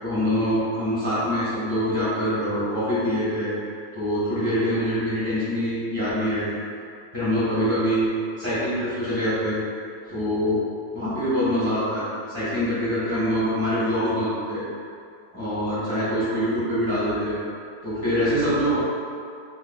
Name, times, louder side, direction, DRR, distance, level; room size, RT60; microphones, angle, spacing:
voice 1, 0.0-3.6 3.9-6.6 7.1-8.1 8.4-9.6 10.1-10.6 10.9-14.6 15.3-17.4 17.8-18.8, equal, 20° right, -13 dB, 1.2 m, -24 dB
3.9 x 3.1 x 2.3 m, 2.3 s
omnidirectional pair, 1.9 m